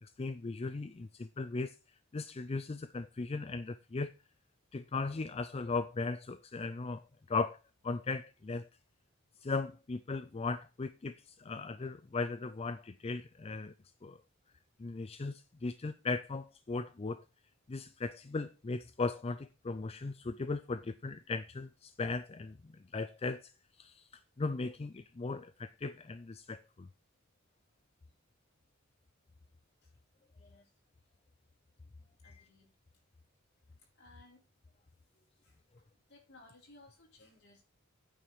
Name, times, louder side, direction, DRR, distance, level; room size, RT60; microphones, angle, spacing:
voice 1, 0.0-1.8 2.1-4.1 4.7-7.0 7.3-7.6 7.8-8.7 9.4-13.7 14.0-14.2 14.8-17.2 17.7-23.5 23.8-24.1 24.4-26.9 32.2-32.5, left 3 dB, 30° left, 0.4 m, -37 dB
voice 2, 30.4-30.7 32.2-32.7 34.0-34.4 35.4-35.6 36.1-37.6, left 2 dB, 55° left, 4.8 m, -60 dB
9.1 x 4.8 x 6.9 m
head